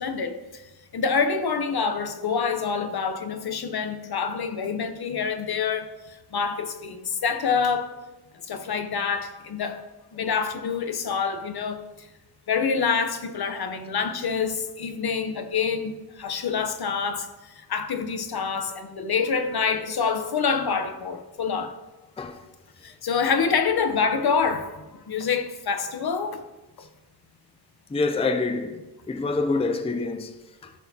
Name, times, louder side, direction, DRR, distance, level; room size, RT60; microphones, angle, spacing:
voice 1, 0.0-7.9 8.4-9.8 10.1-12.1 12.5-21.7 22.8-26.4, left 5 dB, 65° left, 0.8 m, -27 dB
voice 2, 27.9-30.7, left 3 dB, 15° left, 0.4 m, -27 dB
13.5 x 6.3 x 2.8 m
wide cardioid pair, 125°, 40 cm